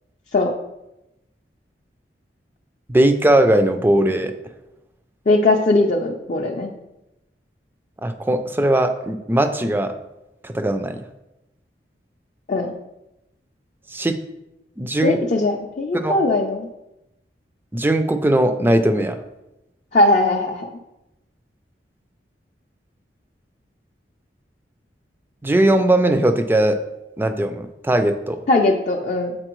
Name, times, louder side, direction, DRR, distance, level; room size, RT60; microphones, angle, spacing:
voice 1, 2.9-4.3 8.0-9.9 10.4-11.0 13.9-14.2 14.8-15.2 15.9-16.2 17.7-19.2 25.4-26.8 27.2-28.4, right 1 dB, 10° right, 8 dB, 0.4 m, -19 dB
voice 2, 5.3-6.7 12.5-12.7 15.0-16.7 19.9-20.7 28.5-29.4, left 2 dB, 45° left, 0 dB, 0.5 m, -19 dB
7.7 x 4.2 x 3.0 m, 0.91 s
head